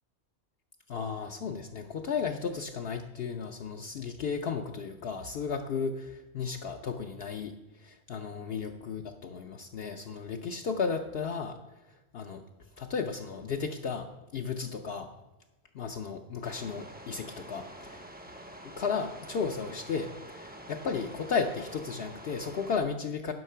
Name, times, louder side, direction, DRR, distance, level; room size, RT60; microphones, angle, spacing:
voice 1, 0.9-7.5 7.8-11.6 12.1-12.4 12.8-15.1 15.7-18.0 18.8-23.3, left 5 dB, 65° left, 3 dB, 0.8 m, -34 dB
sound 1, 16.4-22.8, right 1 dB, 10° right, 0.5 m, -47 dB
11.0 x 5.7 x 5.6 m, 1.1 s
omnidirectional pair, 1.2 m